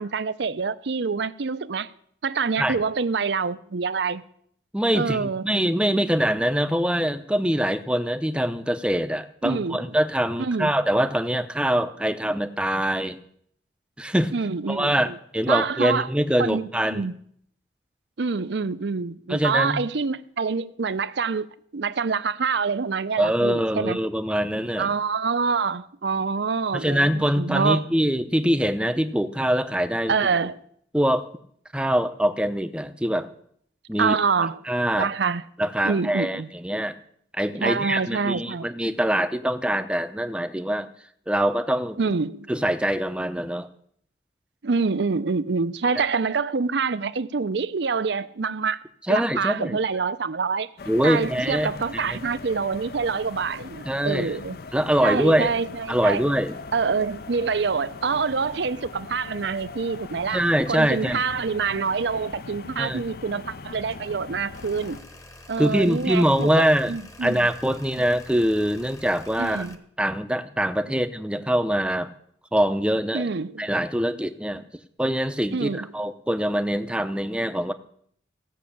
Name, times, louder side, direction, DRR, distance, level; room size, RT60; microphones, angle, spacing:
voice 1, 0.0-1.9 2.2-4.2 4.9-5.5 9.4-9.9 10.4-10.7 14.3-15.2 15.5-16.1 16.4-17.2 18.2-21.5 21.7-24.0 24.8-27.8 30.1-30.6 34.0-34.6 34.9-35.4 35.8-36.5 37.6-38.7 42.0-42.5 44.6-48.8 49.1-50.7 51.0-54.6 55.0-56.2 56.7-65.0 65.5-67.5 69.4-69.8 73.1-73.7 75.5-75.9, right 5 dB, 65° right, 0.5 m, -26 dB
voice 2, 4.7-13.2 14.0-14.3 14.7-17.1 19.3-19.8 23.2-24.9 26.7-30.1 30.9-31.3 31.7-33.3 33.9-34.1 34.7-35.1 35.6-36.9 37.4-40.9 41.3-42.0 42.5-43.7 49.1-49.8 50.9-51.7 52.1-52.2 53.9-54.3 54.7-55.5 55.9-56.5 60.3-61.2 62.8-63.0 65.6-66.9 67.2-69.7 70.0-72.1 72.5-73.3 73.6-74.6 75.0-77.7, equal, 5° right, 0.6 m, -23 dB
sound 1, 50.8-65.0, left 4 dB, 50° left, 0.5 m, -40 dB
sound 2, 64.5-69.8, left 1 dB, 15° left, 1.0 m, -47 dB
16.0 x 6.3 x 8.5 m
head